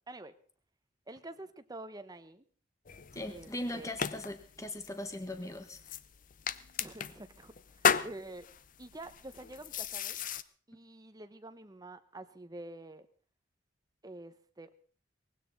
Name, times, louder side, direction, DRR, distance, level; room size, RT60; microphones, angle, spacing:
voice 1, 1.1-2.4 3.3-3.9 6.8-7.5 8.0-8.5 8.8-10.2 10.7-13.1 14.0-14.7, right 2 dB, 20° right, 10 dB, 1.0 m, -47 dB
sound 1, 2.9-10.4, left 7 dB, 45° left, 0.7 m, -36 dB
voice 2, 3.1-5.8, left 1 dB, 15° left, 8 dB, 1.2 m, -39 dB
19.0 x 16.0 x 4.1 m, 0.43 s
head